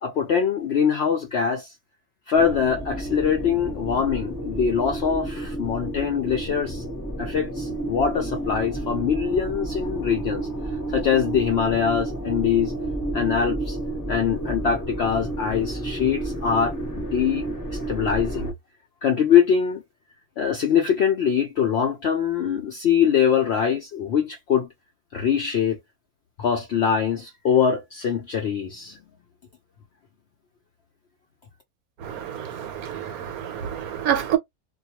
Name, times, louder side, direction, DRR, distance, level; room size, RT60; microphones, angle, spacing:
voice 1, 0.0-1.7 2.3-6.8 7.2-10.5 10.9-12.7 13.1-13.8 14.1-18.5 19.0-19.8 20.4-24.7 25.1-25.8 26.4-29.0, left 7 dB, 70° left, 0.6 m, -23 dB
sound 1, 2.3-18.5, right 1 dB, 15° left, 0.7 m, -31 dB
voice 2, 32.0-34.4, right 10 dB, 80° right, 1.0 m, -28 dB
2.3 x 2.2 x 2.8 m
omnidirectional pair, 1.6 m